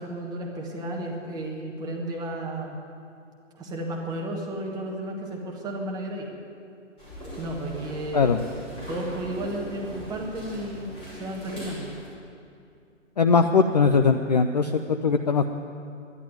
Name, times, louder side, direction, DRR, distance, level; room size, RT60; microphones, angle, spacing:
voice 1, 0.0-2.8 3.6-6.3 7.4-8.3 8.9-10.9 11.1-11.9, right 1 dB, 10° right, -1 dB, 1.4 m, -33 dB
sound 1, 7.0-12.1, equal, 15° left, 4.5 m, -40 dB
voice 2, 13.2-15.5, left 5 dB, 35° left, 7 dB, 0.4 m, -20 dB
11.5 x 11.0 x 9.2 m, 2.5 s
hypercardioid pair, 145°, 38 cm